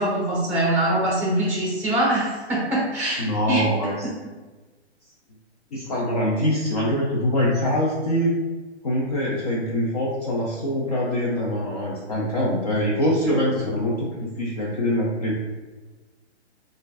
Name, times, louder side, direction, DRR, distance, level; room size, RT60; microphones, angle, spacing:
voice 1, 0.0-3.7, right 1 dB, 5° right, -7 dB, 0.9 m, -23 dB
voice 2, 3.2-4.1 5.7-8.3 8.8-15.4, equal, 35° left, -4 dB, 0.4 m, -24 dB
3.9 x 2.5 x 2.5 m, 1.2 s
hypercardioid pair, 155°, 35 cm